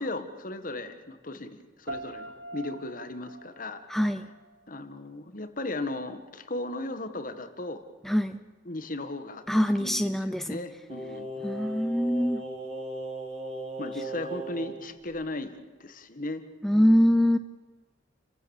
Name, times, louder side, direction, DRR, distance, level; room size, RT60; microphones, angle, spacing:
voice 1, 0.0-3.8 4.7-7.8 8.6-11.4 13.8-16.4 16.7-17.1, left 2 dB, 45° left, 9 dB, 1.6 m, -36 dB
sound 1, 1.9-4.9, right 2 dB, 90° right, 1.7 m, -43 dB
voice 2, 3.9-4.3 8.0-8.4 9.5-10.6 11.4-12.4 16.6-17.4, equal, ahead, 9 dB, 0.6 m, -24 dB
Singing, 10.9-14.8 15.1-15.2, right 1 dB, 35° right, 5.0 m, -37 dB
30.0 x 15.5 x 7.2 m, 1.4 s
head